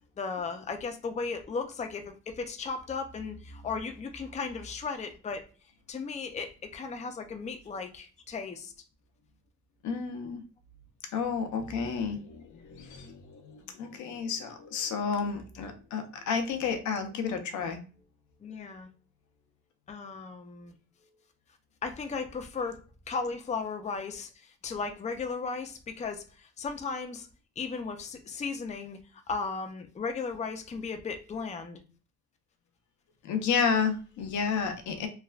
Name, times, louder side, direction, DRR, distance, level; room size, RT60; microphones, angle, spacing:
voice 1, 0.2-5.4 5.9-8.7 18.4-18.9 19.9-20.7 21.8-27.3 27.6-31.8, left 4 dB, 25° left, 5 dB, 0.5 m, -36 dB
voice 2, 9.8-10.4 11.1-17.8 33.2-35.1, left 6 dB, 75° left, 6 dB, 0.7 m, -31 dB
3.2 x 2.3 x 2.3 m, 0.35 s
cardioid pair, 90°, 30 cm